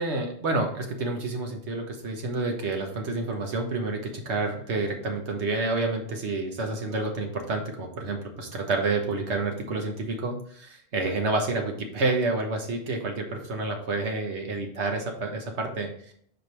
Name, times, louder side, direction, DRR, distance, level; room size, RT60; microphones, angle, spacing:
voice 1, 0.0-16.1, right 3 dB, 85° right, 3 dB, 1.5 m, -29 dB
5.1 x 4.6 x 4.6 m, 0.63 s
omnidirectional pair, 1.1 m